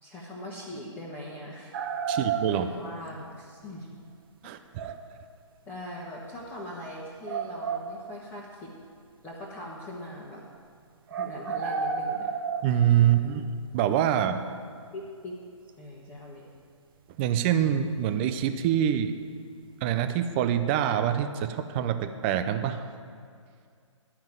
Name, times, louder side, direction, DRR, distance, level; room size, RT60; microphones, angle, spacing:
voice 1, 0.0-1.7 2.1-3.9 4.4-4.5 5.7-8.7 9.2-10.4 11.2-12.3 13.0-13.4 14.9-15.3 15.8-16.5, left 1 dB, 10° left, -6 dB, 1.4 m, -41 dB
sound 1, 1.7-3.1 4.8-5.1 6.4-6.5 7.3-8.4 11.1-13.3 15.7-15.8, right 6 dB, 45° right, 0.9 m, -32 dB
voice 2, 2.1-2.7 4.4-4.9 12.6-13.4 13.7-14.5 17.2-19.1 19.8-22.8, right 10 dB, 20° right, 8 dB, 0.4 m, -25 dB
12.0 x 5.8 x 9.1 m, 2.2 s
hypercardioid pair, 145°, 16 cm